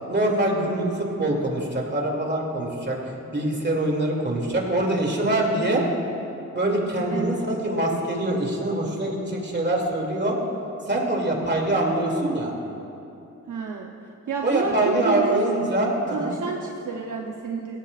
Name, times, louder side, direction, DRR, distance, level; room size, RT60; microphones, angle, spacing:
voice 1, 0.1-5.8 6.5-10.4 10.9-12.5 14.4-16.3, right 1 dB, 35° right, -1 dB, 2.6 m, -24 dB
voice 2, 13.5-13.9 14.3-15.5 16.1-17.8, right 5 dB, 70° right, 1 dB, 0.8 m, -30 dB
17.0 x 13.5 x 2.5 m, 2.8 s
cardioid pair, 55°, 32 cm